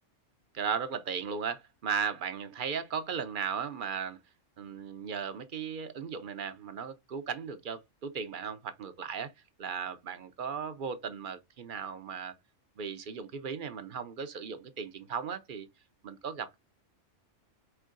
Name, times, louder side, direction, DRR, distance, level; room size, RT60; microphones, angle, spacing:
voice 1, 0.5-4.2 4.6-9.3 9.6-12.3 12.8-15.7 16.0-16.6, right 6 dB, 50° right, 0.7 m, -36 dB
4.5 x 4.5 x 2.5 m
omnidirectional pair, 1.3 m